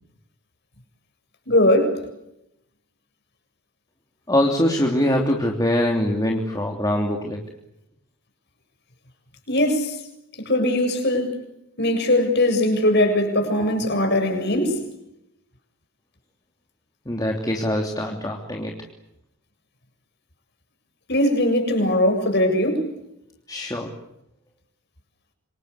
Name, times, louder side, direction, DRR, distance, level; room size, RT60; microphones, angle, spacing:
voice 1, 1.5-2.0 9.5-10.0 10.4-11.4 11.8-14.8 21.1-22.9, left 1 dB, 50° left, 7.4 m, -20 dB
voice 2, 4.3-7.4 17.1-18.7 23.5-23.9, left 1 dB, 15° left, 3.1 m, -23 dB
28.0 x 26.0 x 8.3 m
head